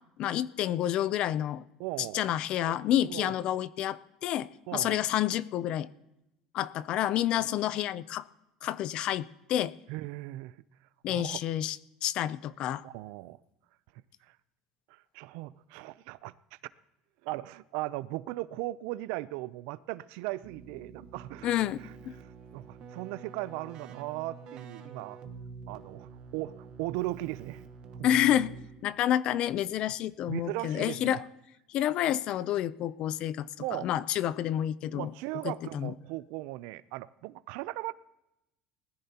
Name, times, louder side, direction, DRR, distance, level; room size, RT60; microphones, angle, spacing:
voice 1, 0.2-1.7 2.1-5.9 6.5-8.2 8.6-9.7 11.0-11.8 12.0-12.8 21.4-21.8 22.1-22.2 28.0-28.5 28.8-31.2 31.7-33.5 33.8-35.1 35.7-35.9, left 12 dB, 45° left, 0.4 m, -29 dB
voice 2, 1.8-2.2 2.6-2.8 3.1-3.3 4.7-5.0 9.9-10.6 11.1-11.4 12.8-13.4 14.2-14.4 14.9-16.6 17.2-21.5 21.8-25.2 25.7-27.6 27.9-28.1 30.3-31.2 33.6-33.9 34.9-37.9, right 18 dB, 75° right, 0.4 m, -38 dB
Keyboard (musical), 20.4-29.1, right 5 dB, 45° right, 1.2 m, -47 dB
20.0 x 13.5 x 2.9 m
cardioid pair, 160°, 2 cm